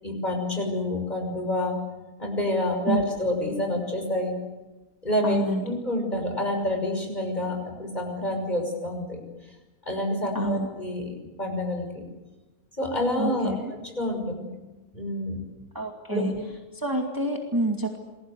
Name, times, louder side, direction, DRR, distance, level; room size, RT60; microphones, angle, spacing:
voice 1, 0.0-1.8 2.2-4.3 5.0-9.2 9.8-12.0 12.8-14.5 14.9-15.4 16.1-16.4, left 1 dB, 30° left, 3 dB, 6.4 m, -28 dB
voice 2, 5.2-5.7 10.3-10.7 13.2-13.7 15.7-16.3 16.7-18.0, right 1 dB, 15° right, 2 dB, 2.3 m, -27 dB
29.0 x 21.0 x 8.2 m, 1.1 s
omnidirectional pair, 1.5 m